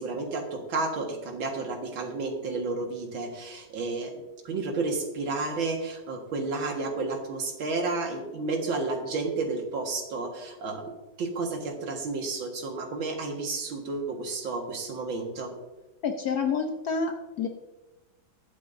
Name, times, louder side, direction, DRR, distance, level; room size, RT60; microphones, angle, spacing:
voice 1, 0.0-15.5, right 3 dB, 85° right, 2 dB, 2.4 m, -31 dB
voice 2, 16.0-17.5, left 5 dB, 60° left, 4 dB, 1.1 m, -28 dB
20.5 x 8.3 x 2.7 m, 1.1 s
omnidirectional pair, 2.1 m